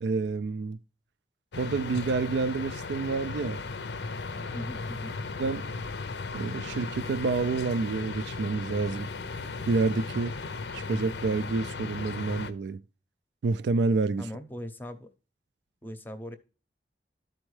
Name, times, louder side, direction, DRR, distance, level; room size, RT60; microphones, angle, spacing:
voice 1, 0.0-0.8 1.5-3.6 5.4-5.7 6.3-9.1 9.7-10.4 10.7-12.8 13.4-14.3, right 4 dB, 80° right, 0.3 m, -28 dB
sound 1, 1.5-12.5, left 4 dB, 75° left, 0.6 m, -36 dB
voice 2, 4.5-5.1 14.2-15.1 15.8-16.4, left 1 dB, 10° left, 0.6 m, -39 dB
12.5 x 4.5 x 3.1 m
head